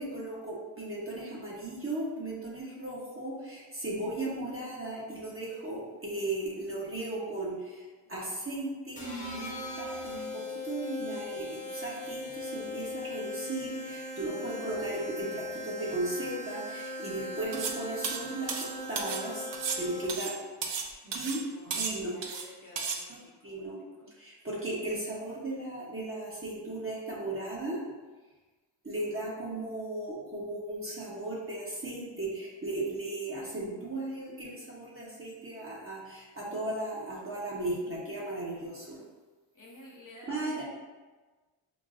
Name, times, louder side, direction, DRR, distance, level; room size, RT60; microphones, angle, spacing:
voice 1, 0.0-19.5 19.8-20.3 21.0-22.2 23.1-23.2 23.4-23.8 24.2-27.8 28.8-39.0 40.3-40.6, right 2 dB, 30° right, -6 dB, 1.2 m, -36 dB
sound 1, 9.0-20.3, left 1 dB, 15° left, 1.0 m, -39 dB
sound 2, 17.5-17.8 18.0-19.2 19.5-20.9 21.1-21.4 21.7-22.5 22.8-23.0, right 5 dB, 70° right, 0.6 m, -34 dB
voice 2, 21.0-24.1 39.5-40.6, left 1 dB, 45° left, -4 dB, 0.9 m, -52 dB
5.9 x 2.2 x 2.5 m, 1.3 s
cardioid pair, 65°, 46 cm